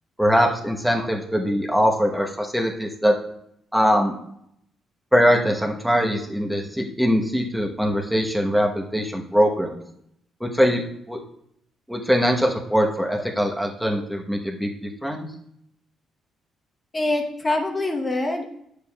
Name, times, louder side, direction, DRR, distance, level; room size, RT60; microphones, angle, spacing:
voice 1, 0.2-3.1 3.7-4.1 5.1-9.8 10.4-10.8 11.1-11.2 11.9-14.7 15.0-15.2, equal, ahead, 1 dB, 1.0 m, -22 dB
voice 2, 16.9-18.5, left 2 dB, 25° left, 2 dB, 0.9 m, -24 dB
9.2 x 6.8 x 2.3 m, 0.73 s
cardioid pair, 90°, 0 cm